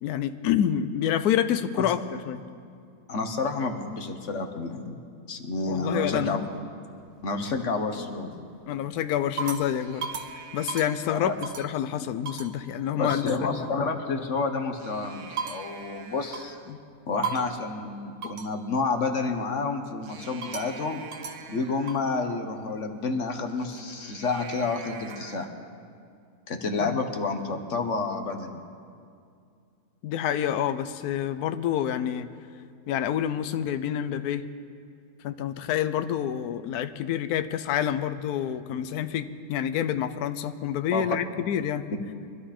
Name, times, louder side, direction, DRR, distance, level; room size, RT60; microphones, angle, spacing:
voice 1, 0.0-2.4 5.7-6.4 8.7-10.1 10.5-13.2 16.7-16.8 26.8-27.0 30.0-32.3 32.9-34.5 35.2-41.9, left 10 dB, 75° left, 10 dB, 1.1 m, -28 dB
voice 2, 3.1-5.0 5.3-6.5 7.2-8.4 11.1-11.3 13.0-16.6 17.1-21.0 21.5-25.5 26.5-28.6 40.9-41.0, left 4 dB, 50° left, 5 dB, 1.4 m, -29 dB
sound 1, 6.9-7.6 8.2-8.6 9.0-11.8 12.3-12.6 13.1-13.4 14.6-16.7 17.2-17.7 18.2-18.6 20.0-22.1 23.5-25.5, right 5 dB, 55° right, 1.2 m, -38 dB
24.5 x 12.5 x 4.3 m, 2.3 s
omnidirectional pair, 1.7 m